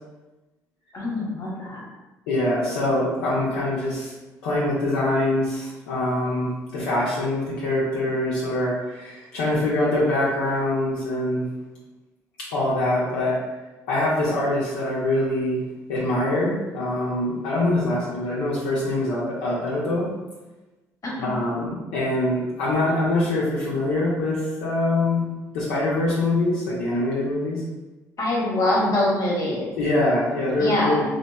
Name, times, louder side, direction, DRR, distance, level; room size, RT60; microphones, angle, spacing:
voice 1, 0.9-1.8 21.0-21.3 28.2-29.7 30.6-31.0, left 1 dB, 45° left, -3 dB, 0.9 m, -24 dB
voice 2, 2.3-4.1 4.4-11.5 12.5-13.4 13.9-15.6 15.9-20.1 21.2-25.3 25.5-27.6 29.8-31.0, left 1 dB, 80° left, -7 dB, 0.5 m, -24 dB
2.8 x 2.1 x 2.2 m, 1.1 s
hypercardioid pair, 50°, 8 cm